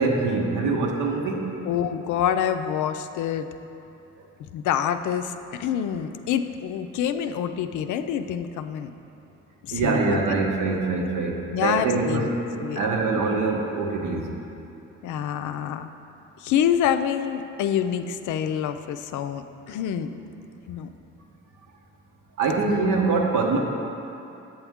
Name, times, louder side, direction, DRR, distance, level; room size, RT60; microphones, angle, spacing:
voice 1, 0.0-1.5 9.7-12.4 12.8-14.2 22.4-23.6, right 3 dB, 80° right, 1 dB, 1.0 m, -24 dB
voice 2, 1.6-3.5 4.4-8.9 9.6-10.2 11.0-11.1 11.5-12.3 12.6-12.8 15.0-15.9 16.4-20.2 20.7-20.9, left 9 dB, 80° left, 9 dB, 0.5 m, -27 dB
7.8 x 7.1 x 3.5 m, 2.8 s
cardioid pair, 90°, 30 cm